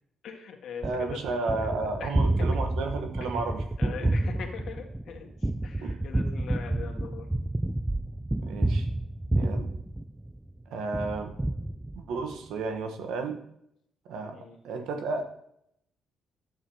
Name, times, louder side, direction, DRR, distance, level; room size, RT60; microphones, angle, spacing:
voice 1, 0.2-2.5 3.8-7.3 14.3-14.6, left 6 dB, 70° left, 1 dB, 1.6 m, -42 dB
Gunshot gunfire, 0.8-10.5 10.9-12.3, right 1 dB, 10° right, 0.3 m, -29 dB
voice 2, 0.8-4.2 5.8-6.0 8.4-8.9 9.3-9.7 10.7-11.3 12.0-13.4 14.0-15.2, right 3 dB, 85° right, 6 dB, 1.1 m, -33 dB
11.0 x 7.4 x 2.8 m, 0.75 s
cardioid pair, 90°, 0 cm